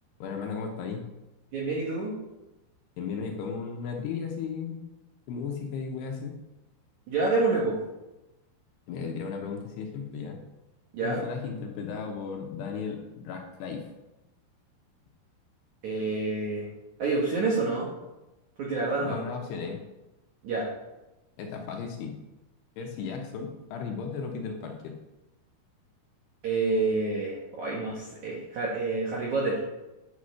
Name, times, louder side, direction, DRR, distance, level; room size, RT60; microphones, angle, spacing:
voice 1, 0.2-1.0 3.0-4.8 5.3-6.4 8.9-10.4 11.0-13.9 19.0-19.8 21.4-22.2 22.8-25.0, left 5 dB, 75° left, 2 dB, 2.6 m, -35 dB
voice 2, 1.5-2.1 7.1-7.8 10.9-11.2 15.8-16.7 17.0-17.9 18.6-19.2 20.4-20.7 26.4-29.6, right 3 dB, 80° right, -3 dB, 1.7 m, -28 dB
10.0 x 5.3 x 6.4 m, 0.99 s
omnidirectional pair, 5.7 m